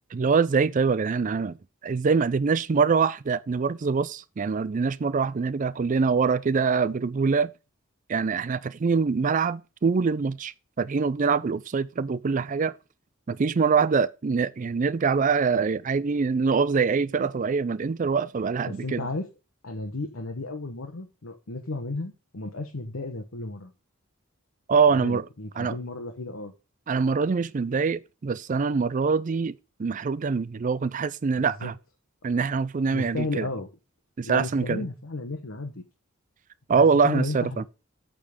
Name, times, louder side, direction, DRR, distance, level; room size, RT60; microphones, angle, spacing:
voice 1, 0.1-1.6 1.8-7.5 8.1-12.8 13.3-19.1 24.7-25.2 25.6-25.8 26.9-29.5 29.8-31.7 32.2-33.5 34.2-34.8 36.7-37.6, right 5 dB, 40° right, 0.4 m, -24 dB
voice 2, 18.6-19.3 19.6-23.7 24.9-26.5 31.4-31.7 32.9-33.7 34.2-35.8 36.7-37.7, left 2 dB, 85° left, 1.0 m, -34 dB
8.6 x 3.8 x 6.3 m
head